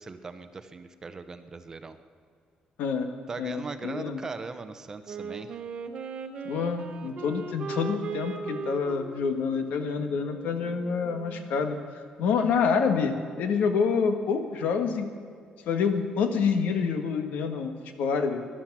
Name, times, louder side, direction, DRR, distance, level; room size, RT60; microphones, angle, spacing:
voice 1, 0.0-2.0 3.3-5.6 12.5-12.6, right 4 dB, 20° right, 9 dB, 0.7 m, -39 dB
voice 2, 3.4-4.2 6.4-11.8 12.2-15.1 15.7-17.7 18.0-18.4, left 5 dB, 80° left, 7 dB, 1.4 m, -27 dB
Wind instrument woodwind instrument, 5.0-11.6, right 5 dB, 40° right, 1.0 m, -38 dB
19.0 x 11.5 x 6.0 m, 2.3 s
cardioid pair, 170°, 3 cm